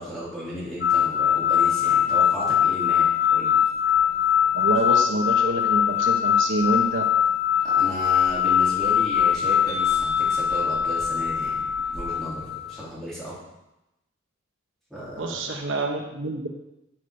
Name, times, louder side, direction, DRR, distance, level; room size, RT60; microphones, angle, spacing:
voice 1, 0.0-3.5 7.6-11.6 11.9-13.3 14.9-15.5, equal, ahead, -9 dB, 4.6 m, -34 dB
sound 1, 0.8-12.8, left 9 dB, 50° left, 1.3 m, -22 dB
voice 2, 4.5-7.0 15.2-16.5, right 2 dB, 70° right, 2 dB, 1.3 m, -27 dB
9.3 x 7.9 x 7.1 m, 0.93 s
head